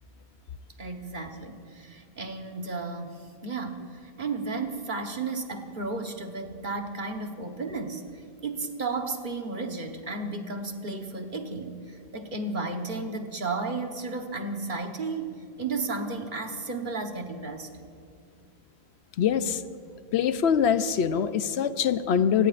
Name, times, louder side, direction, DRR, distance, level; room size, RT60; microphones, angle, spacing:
voice 1, 0.8-8.0 8.4-15.3 15.6-17.7, right 3 dB, 50° right, 4 dB, 1.3 m, -33 dB
voice 2, 19.2-19.6 20.1-22.5, left 7 dB, 85° left, 12 dB, 0.9 m, -24 dB
28.5 x 17.0 x 2.5 m, 2.4 s
omnidirectional pair, 1.1 m